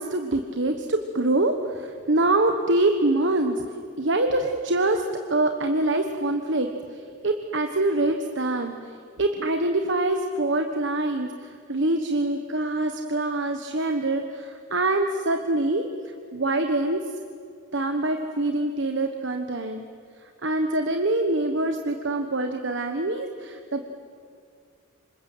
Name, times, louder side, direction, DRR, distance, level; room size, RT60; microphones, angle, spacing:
voice 1, 0.0-8.9 9.2-17.0 17.7-19.9 20.4-23.9, right 2 dB, 65° right, 5 dB, 1.3 m, -25 dB
27.5 x 25.5 x 8.0 m, 2.2 s
head